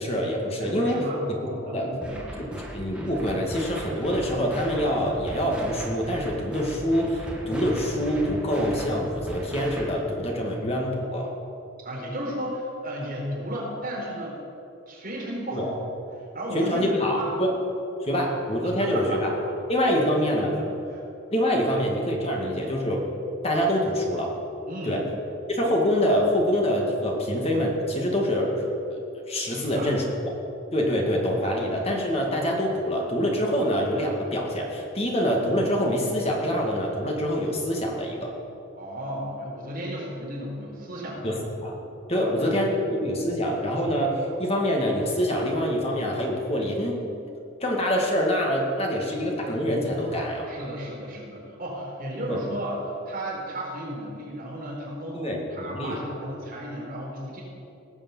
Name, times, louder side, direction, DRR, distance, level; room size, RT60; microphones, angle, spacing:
voice 1, 0.0-1.0 1.4-1.9 2.4-11.3 15.5-15.7 16.5-17.6 18.0-19.3 19.7-20.5 21.3-23.0 23.4-24.3 24.8-25.0 25.5-28.5 28.9-30.0 30.7-38.3 41.2-41.8 42.1-47.0 47.6-50.5 52.3-52.4 55.1-56.0, equal, 30° left, -1 dB, 2.2 m, -25 dB
voice 2, 0.6-2.3 11.8-14.4 14.9-15.8 16.3-17.3 18.6-19.6 20.5-21.0 21.7-21.8 22.2-22.5 24.7-25.0 29.5-30.0 38.8-41.4 42.1-42.5 50.4-57.4, equal, 45° right, -4 dB, 4.3 m, -34 dB
sound 1, 2.0-10.0, equal, 5° right, 1.7 m, -38 dB
18.5 x 7.3 x 7.3 m, 2.7 s
head